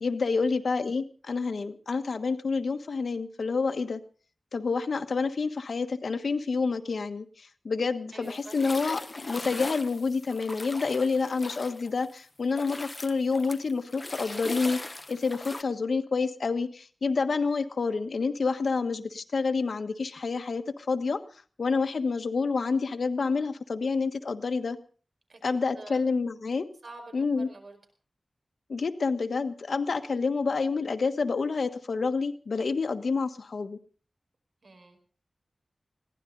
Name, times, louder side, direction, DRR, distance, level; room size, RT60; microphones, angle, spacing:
voice 1, 0.0-4.0 4.5-14.8 15.1-21.2 21.6-24.8 25.4-26.7 27.1-27.5 28.7-33.8, left 4 dB, 90° left, 8 dB, 1.3 m, -28 dB
voice 2, 8.1-8.7 25.3-26.0 26.8-27.8 34.6-35.0, right 2 dB, 70° right, 5 dB, 4.9 m, -47 dB
sound 1, 8.2-12.2 12.5-15.6, left 2 dB, 35° left, 1.1 m, -40 dB
21.5 x 16.5 x 3.9 m, 0.40 s
wide cardioid pair, 95°, 0 cm